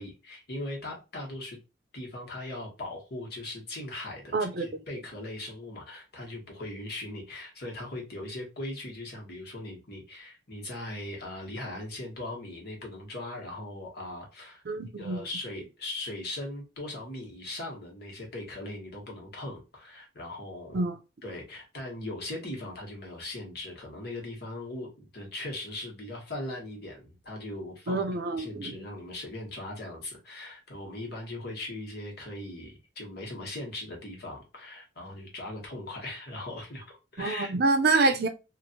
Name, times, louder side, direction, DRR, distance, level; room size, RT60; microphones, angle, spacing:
voice 1, 0.0-1.6 1.9-14.6 15.0-20.8 21.2-28.0 28.3-37.5, left 1 dB, 55° left, 1.3 m, -39 dB
voice 2, 4.3-4.7 14.7-15.2 20.7-21.0 27.9-28.8 37.2-38.3, right 3 dB, 60° right, 0.5 m, -26 dB
3.1 x 2.5 x 2.7 m
head